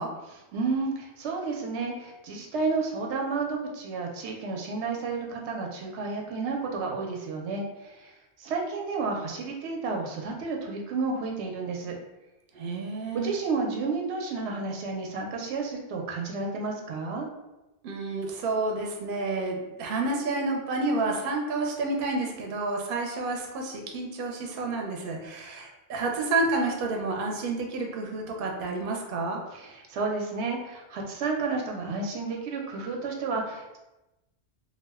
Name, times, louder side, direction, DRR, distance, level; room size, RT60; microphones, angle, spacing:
voice 1, 0.3-12.0 13.1-17.3 29.5-33.8, right 4 dB, 85° right, 0 dB, 0.9 m, -31 dB
voice 2, 12.5-13.4 17.8-29.4, right 3 dB, 60° right, 1 dB, 0.7 m, -30 dB
2.4 x 2.1 x 3.3 m, 0.97 s
omnidirectional pair, 1.1 m